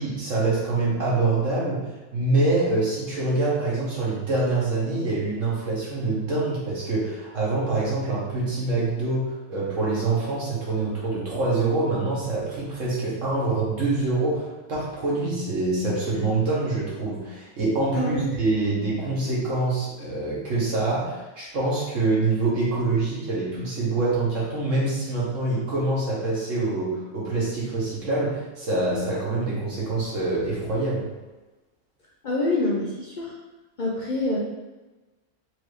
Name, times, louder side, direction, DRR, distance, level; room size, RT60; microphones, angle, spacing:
voice 1, 0.0-1.8 2.1-31.1, right 2 dB, 60° right, -6 dB, 1.5 m, -25 dB
voice 2, 32.2-33.4 33.8-34.4, left 2 dB, 60° left, -4 dB, 0.5 m, -26 dB
4.6 x 2.7 x 3.2 m, 1.2 s
omnidirectional pair, 1.5 m